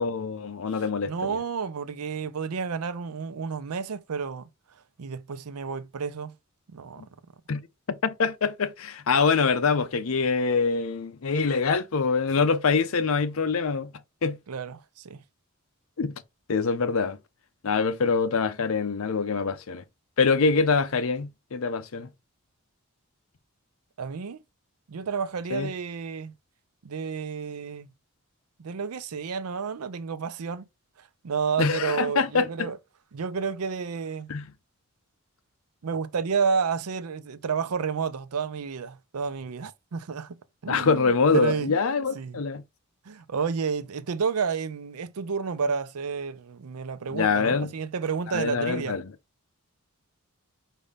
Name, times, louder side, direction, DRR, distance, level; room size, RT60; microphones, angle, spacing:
voice 1, 0.0-1.4 7.0-7.1 7.5-7.6 7.9-13.9 14.2-14.4 16.0-16.2 16.5-17.2 17.6-19.8 20.2-22.1 25.5-25.7 31.6-32.7 34.3-34.4 40.7-42.6 47.1-47.7 48.3-49.0, left 4 dB, 70° left, 0.6 m, -25 dB
voice 2, 1.0-4.5 5.0-6.4 6.7-7.0 14.5-15.2 24.0-24.4 24.9-26.3 26.8-27.9 28.6-30.7 31.0-32.8 33.1-34.3 35.8-41.8 42.1-42.4 43.1-49.0, right 5 dB, 80° right, 0.5 m, -31 dB
5.1 x 2.7 x 3.3 m
head